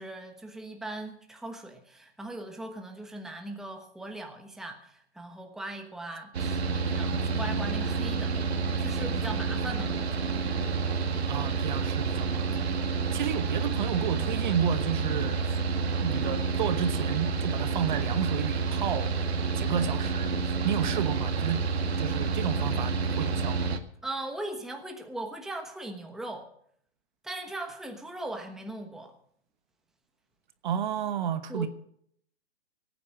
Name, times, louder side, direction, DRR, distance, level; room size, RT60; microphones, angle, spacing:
voice 1, 0.0-8.4 8.8-10.4 24.0-26.5 27.2-29.1 31.5-31.7, right 2 dB, ahead, 1.2 m, -39 dB
Mechanical fan, 6.3-23.8, right 4 dB, 65° right, 2.0 m, -29 dB
voice 2, 11.3-12.7 13.1-15.5 16.0-21.6 22.0-23.7 30.6-31.7, right 8 dB, 45° right, 1.1 m, -31 dB
18.0 x 9.5 x 6.4 m
hypercardioid pair, 145°, 34 cm